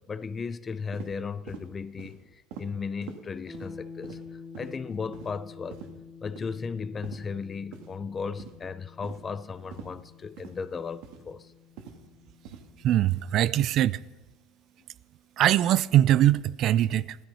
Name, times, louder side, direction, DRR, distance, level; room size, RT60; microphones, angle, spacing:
voice 1, 0.0-2.2 2.6-4.2 4.6-5.8 6.2-11.5, left 5 dB, 25° left, 0.6 m, -35 dB
sound 1, 0.9-1.1 1.5-1.7 2.0-2.2 2.5-2.7 3.0-3.2 3.5-3.7 4.0-4.2 4.5-4.7 5.1-5.3 5.7-5.9 6.4-6.6 7.0-7.2 7.7-7.9 8.4-8.6 9.0-9.2 9.7-9.9 10.4-10.5 11.0-11.2 11.8-12.0 12.5-12.6 13.1-13.2, right 7 dB, 75° right, 2.0 m, -43 dB
sound 2, 3.5-13.2, left 5 dB, 5° left, 2.5 m, -48 dB
voice 2, 12.8-14.0 15.4-17.2, right 12 dB, 50° right, 0.4 m, -22 dB
15.0 x 12.5 x 5.6 m
cardioid pair, 135°, 0 cm